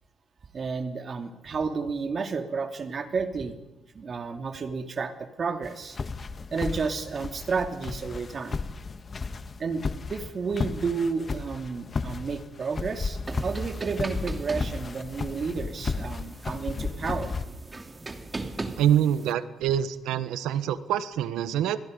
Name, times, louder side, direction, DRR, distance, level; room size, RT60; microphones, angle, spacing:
voice 1, 0.5-3.6 3.9-6.0 6.5-8.6 9.6-9.8 10.1-17.3, right 5 dB, 45° right, 6 dB, 2.9 m, -31 dB
sound 1, 5.6-17.4, left 4 dB, 35° left, 1.7 m, -34 dB
sound 2, 13.3-19.3, right 2 dB, 20° right, 2.8 m, -39 dB
voice 2, 18.8-21.8, right 10 dB, 90° right, 12 dB, 1.4 m, -25 dB
29.5 x 22.0 x 5.4 m, 1.0 s
cardioid pair, 90°, 0 cm